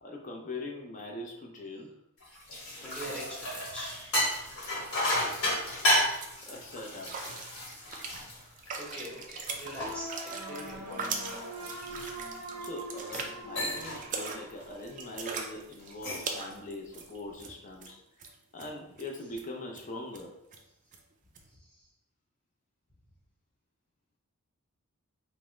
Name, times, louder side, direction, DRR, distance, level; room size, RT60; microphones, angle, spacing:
voice 1, 0.0-1.9 6.5-7.4 12.6-18.0 18.5-20.3, left 2 dB, 35° left, 1 dB, 0.5 m, -42 dB
sound 1, 2.2-9.0 9.5-12.5 13.0-13.3 13.6-14.0 14.4-14.7 15.8-16.4, left 1 dB, 70° left, 1.2 m, -33 dB
voice 2, 2.8-4.2 8.7-11.7 16.1-16.3, right 1 dB, 5° left, -6 dB, 0.9 m, -43 dB
sound 2, 5.6-5.7 6.0-6.4 7.0-17.5 17.8-17.9 18.2-18.7 19.0-19.1 19.4-19.5 19.7-19.8 20.1-20.2 20.5-20.6 20.9-21.0 21.4-21.5, right 4 dB, 35° right, 0.3 m, -40 dB
sound 3, 9.8-14.8, right 1 dB, 85° right, 0.6 m, -42 dB
3.4 x 2.0 x 3.0 m, 0.82 s
head